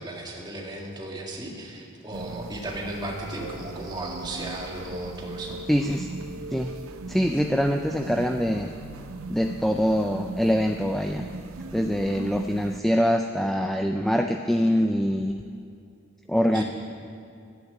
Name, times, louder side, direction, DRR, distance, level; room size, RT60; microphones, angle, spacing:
voice 1, 0.0-5.6 16.5-16.6, right 1 dB, 20° right, -2 dB, 1.9 m, -35 dB
sound 1, 2.1-12.8, right 3 dB, 85° right, 0.6 m, -39 dB
voice 2, 5.7-6.1 6.5-6.7 7.1-8.7 9.3-11.3 11.7-15.3 16.3-16.6, equal, ahead, 4 dB, 0.3 m, -24 dB
12.0 x 8.9 x 9.5 m, 2.5 s
head